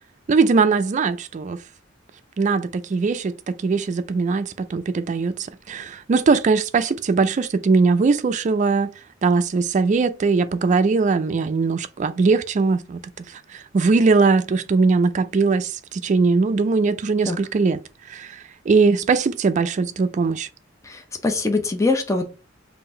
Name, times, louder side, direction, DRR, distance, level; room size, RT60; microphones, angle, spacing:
voice 1, 0.3-1.6 2.4-5.4 5.7-8.9 9.2-17.8 18.1-20.5, right 4 dB, 40° right, 0.3 m, -20 dB
voice 2, 20.8-22.2, left 3 dB, 15° left, 0.5 m, -23 dB
3.7 x 2.6 x 4.3 m
head